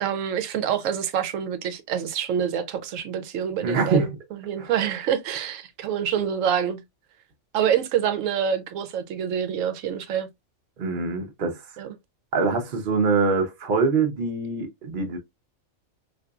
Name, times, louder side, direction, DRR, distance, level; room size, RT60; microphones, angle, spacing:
voice 1, 0.0-6.8 7.5-10.3 11.8-11.9, right 8 dB, 80° right, 1.0 m, -26 dB
voice 2, 3.6-4.1 4.6-4.7 10.8-11.8 12.3-15.2, right 4 dB, 50° right, 0.7 m, -24 dB
3.7 x 2.6 x 2.2 m
omnidirectional pair, 1.3 m